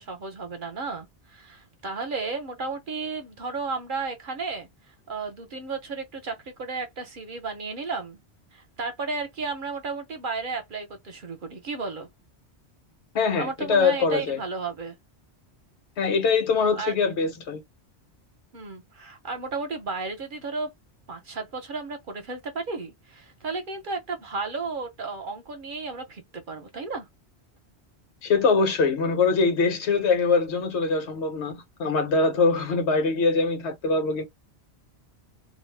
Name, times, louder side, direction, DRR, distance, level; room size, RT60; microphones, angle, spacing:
voice 1, 0.0-8.2 8.5-12.1 13.4-14.9 16.5-16.9 18.5-20.7 21.1-27.0, right 4 dB, 55° right, 0.8 m, -33 dB
voice 2, 13.1-14.4 16.0-17.6 28.2-34.2, left 4 dB, 80° left, 1.1 m, -23 dB
2.5 x 2.0 x 3.1 m
omnidirectional pair, 1.1 m